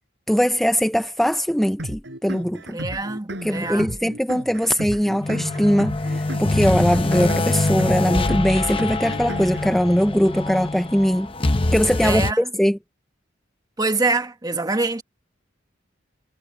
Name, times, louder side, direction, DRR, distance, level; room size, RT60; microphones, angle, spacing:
voice 1, 0.3-2.8 3.4-11.3 11.7-12.8, equal, ahead, 0.4 m, -21 dB
sound 1, 1.8-9.8, right 1 dB, 65° right, 5.2 m, -34 dB
voice 2, 2.7-3.9 12.0-12.5 13.8-15.0, right 3 dB, 20° right, 1.3 m, -25 dB
sound 2, 5.2-12.3, left 2 dB, 30° left, 0.8 m, -24 dB
head